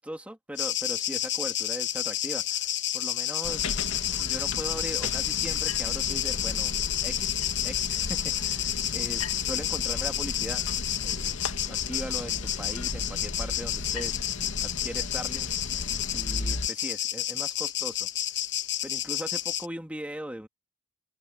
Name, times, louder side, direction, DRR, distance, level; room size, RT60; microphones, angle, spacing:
voice 1, 0.0-3.8 4.2-6.7 7.0-7.4 7.6-10.6 11.0-11.4 11.7-14.2 14.6-15.5 16.1-18.1 18.8-20.5, equal, 5° right, 2.3 m, -39 dB
sound 1, 0.6-19.7, left 12 dB, 55° left, 1.1 m, -30 dB
sound 2, 3.4-16.7, left 2 dB, 85° left, 2.0 m, -36 dB
head